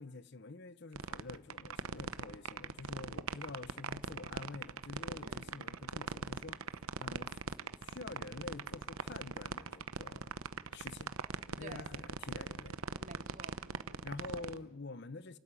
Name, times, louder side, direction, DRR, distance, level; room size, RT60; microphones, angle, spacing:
voice 1, 0.0-7.4 7.8-10.4 10.7-11.1 11.6-12.8 14.0-15.4, left 3 dB, 55° left, 0.8 m, -48 dB
sound 1, 0.9-14.6, right 5 dB, 85° right, 0.9 m, -40 dB
voice 2, 13.0-14.6, right 2 dB, 35° right, 2.1 m, -53 dB
29.0 x 13.0 x 9.8 m
head